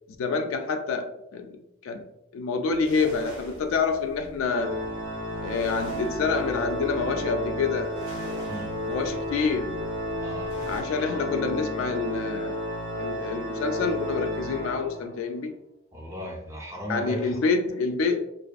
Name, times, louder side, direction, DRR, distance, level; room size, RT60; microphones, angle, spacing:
voice 1, 0.2-2.1 2.3-4.8 5.4-8.0 8.9-9.8 10.7-12.6 13.0-15.5 16.9-18.2, left 4 dB, 70° left, 0.3 m, -27 dB
sound 1, 2.7-10.8, equal, 85° right, 1.1 m, -45 dB
Organ, 4.5-15.3, equal, 65° right, 0.7 m, -32 dB
voice 2, 10.2-10.6 15.9-17.4, equal, 15° right, 0.5 m, -36 dB
2.5 x 2.5 x 2.2 m
head